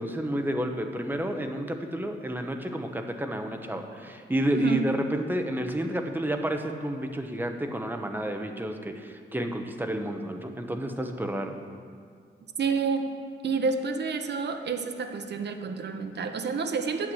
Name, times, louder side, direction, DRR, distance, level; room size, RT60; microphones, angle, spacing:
voice 1, 0.0-11.5, right 1 dB, 10° right, 5 dB, 0.9 m, -30 dB
voice 2, 12.6-13.1 13.4-17.1, right 5 dB, 60° right, 6 dB, 0.9 m, -29 dB
9.1 x 7.9 x 7.8 m, 2.1 s
wide cardioid pair, 125°, 20 cm